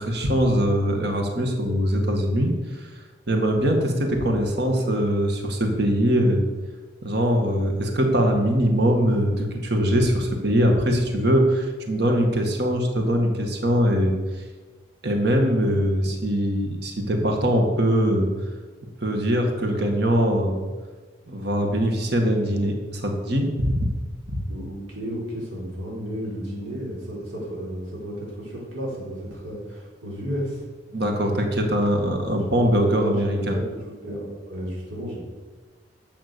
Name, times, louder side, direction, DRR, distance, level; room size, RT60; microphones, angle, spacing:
voice 1, 0.0-2.5 3.3-6.4 7.0-14.1 15.0-18.3 19.0-20.6 21.3-23.9 24.3-24.4 30.9-33.6, equal, 55° right, 3 dB, 2.0 m, -22 dB
voice 2, 24.5-30.6 32.1-32.5 33.0-35.2, equal, 80° right, -5 dB, 4.6 m, -33 dB
11.5 x 8.1 x 6.9 m, 1.3 s
head